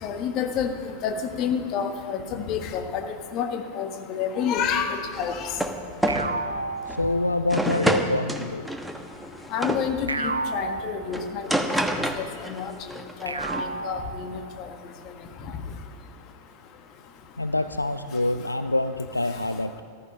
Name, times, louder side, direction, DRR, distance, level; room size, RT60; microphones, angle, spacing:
voice 1, 0.0-0.7 1.0-3.0 3.3-5.5 9.5-11.7 12.2-12.7 13.2-13.3 13.6-14.4, left 7 dB, 40° left, 6 dB, 1.5 m, -29 dB
sound 1, 5.1-5.8 6.0-6.3 6.9-7.0 7.5-9.9 11.1-12.6 12.9-13.6, right 1 dB, ahead, 1.2 m, -28 dB
sound 2, 6.1-7.7 10.1-11.7 13.2-14.8, right 3 dB, 75° right, 0.7 m, -32 dB
voice 2, 6.9-8.7 17.4-19.8, left 2 dB, 85° left, 11 dB, 0.4 m, -26 dB
14.5 x 13.5 x 5.5 m, 2.3 s
figure-of-eight pair, 90°, 0 cm